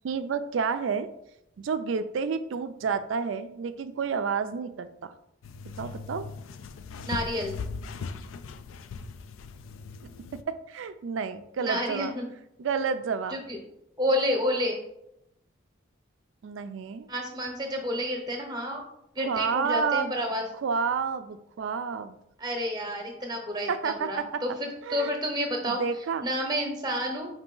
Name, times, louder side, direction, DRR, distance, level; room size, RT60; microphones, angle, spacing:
voice 1, 0.0-1.1 1.6-5.1 5.8-6.3 10.3-12.2 12.6-13.4 16.4-17.1 19.2-20.1 20.6-22.2 23.7-24.4 24.9-25.1 25.7-26.2, right 5 dB, 75° right, 11 dB, 0.3 m, -30 dB
sound 1, 5.4-10.4, left 4 dB, 85° left, 0.3 m, -39 dB
voice 2, 7.1-7.6 11.6-12.3 13.3-13.6 14.0-14.8 17.1-18.8 19.1-20.5 22.4-25.8 26.2-27.3, equal, 20° right, 3 dB, 0.7 m, -30 dB
4.9 x 2.7 x 3.7 m, 0.81 s
head